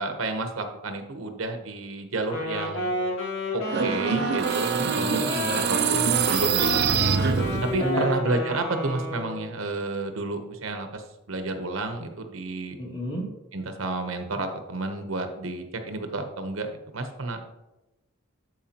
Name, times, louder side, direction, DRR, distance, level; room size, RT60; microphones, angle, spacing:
voice 1, 0.0-2.9 3.5-5.3 5.7-7.0 7.7-11.0 11.3-12.8 13.5-17.5, right 2 dB, 80° right, 6 dB, 0.9 m, -31 dB
Wind instrument woodwind instrument, 2.2-9.5, equal, 75° left, 2.2 m, -31 dB
sound 1, 3.6-7.9, right 6 dB, 55° right, 0.5 m, -25 dB
voice 2, 4.8-5.8 7.8-8.1 12.8-13.3, equal, 30° left, -3 dB, 2.1 m, -31 dB
12.5 x 4.7 x 2.9 m, 0.97 s
head